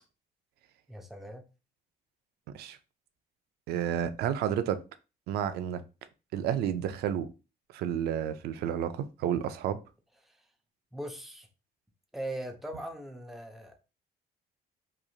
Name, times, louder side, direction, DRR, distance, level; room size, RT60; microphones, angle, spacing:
voice 1, 0.9-1.4 10.2-10.4 10.9-11.5 12.1-13.8, right 1 dB, ahead, 0.5 m, -40 dB
voice 2, 3.7-4.8 5.3-5.8 6.3-7.3 7.7-9.8, right 9 dB, 70° right, 0.4 m, -31 dB
3.0 x 2.5 x 2.3 m
cardioid pair, 110°, 17 cm